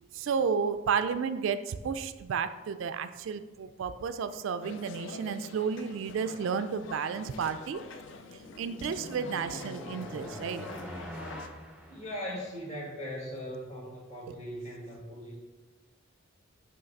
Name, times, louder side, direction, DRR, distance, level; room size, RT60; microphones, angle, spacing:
voice 1, 0.0-7.8 8.6-10.6 14.3-14.4, right 6 dB, 65° right, 11 dB, 0.3 m, -32 dB
sound 1, 4.6-11.5, left 4 dB, 60° left, 0.4 m, -46 dB
sound 2, 7.8-12.7, equal, 5° right, 0.5 m, -45 dB
voice 2, 11.9-15.4, equal, 35° left, -4 dB, 1.7 m, -39 dB
5.6 x 3.2 x 5.3 m, 1.1 s
head